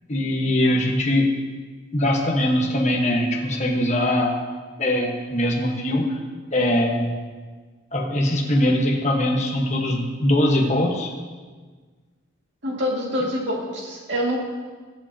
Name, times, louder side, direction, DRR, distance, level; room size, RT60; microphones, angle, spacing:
voice 1, 0.1-1.3 1.9-4.3 4.8-6.2 6.5-7.1 7.9-11.1, left 1 dB, 35° left, 0 dB, 1.3 m, -21 dB
voice 2, 12.6-14.4, equal, 65° right, -2 dB, 2.2 m, -26 dB
19.5 x 7.5 x 2.9 m, 1.4 s
head